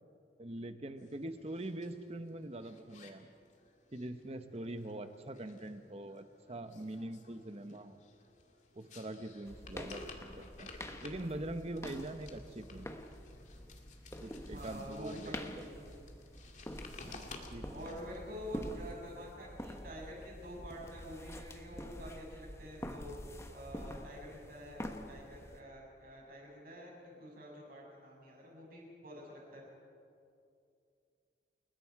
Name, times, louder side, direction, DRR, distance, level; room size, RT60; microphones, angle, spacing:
voice 1, 0.4-3.3 3.9-8.0 8.7-10.7 11.0-12.9 14.2-15.7 17.0-17.7, right 1 dB, 35° right, 9 dB, 1.1 m, -43 dB
sound 1, 1.0-18.2, left 3 dB, 45° left, 2.1 m, -56 dB
sound 2, 9.5-25.6, left 1 dB, 15° left, 1.2 m, -47 dB
voice 2, 14.5-16.0 17.5-23.2 23.5-29.6, equal, 55° right, -2 dB, 7.3 m, -48 dB
29.5 x 21.0 x 4.8 m, 2.5 s
head